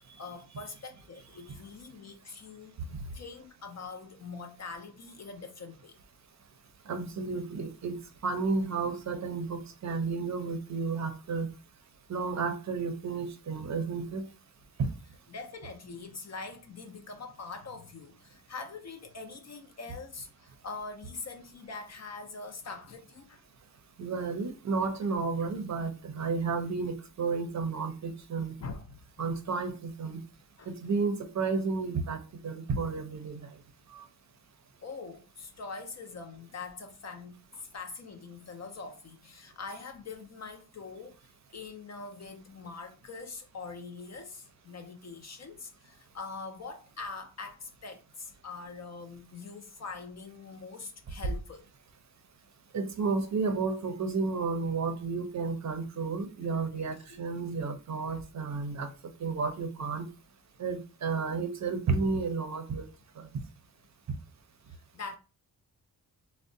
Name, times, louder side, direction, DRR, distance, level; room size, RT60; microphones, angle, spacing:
voice 1, 0.2-2.8 3.1-6.0 15.3-23.5 25.4-25.5 28.6-29.3 30.6-30.7 34.8-37.4 37.7-51.6 57.0-57.5 58.1-58.2 59.3-59.4 64.7-65.2, left 4 dB, 50° left, 0.4 m, -43 dB
voice 2, 6.9-11.5 12.1-14.2 14.8-14.9 24.0-28.5 29.2-30.2 30.7-33.5 33.9-34.0 52.7-58.9 59.2-60.1 60.6-62.8 63.2-63.3, right 4 dB, 50° right, 0.5 m, -32 dB
3.5 x 2.1 x 2.6 m
wide cardioid pair, 140°, 36 cm